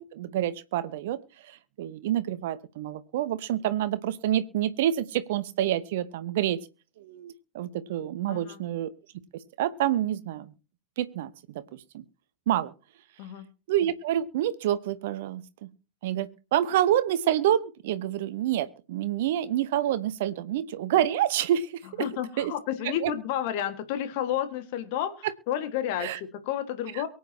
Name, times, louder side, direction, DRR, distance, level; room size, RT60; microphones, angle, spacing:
voice 1, 0.0-6.6 7.0-8.9 9.6-10.5 11.0-11.6 11.9-12.0 12.5-12.7 13.7-15.7 16.0-22.0 22.4-22.5 22.8-23.1 26.0-26.2, right 12 dB, 55° right, 14 dB, 1.0 m, -28 dB
voice 2, 8.3-8.6 13.2-13.5 22.0-27.1, left 11 dB, 50° left, 10 dB, 1.7 m, -31 dB
23.5 x 8.5 x 2.8 m, 0.34 s
figure-of-eight pair, 90°, 0 cm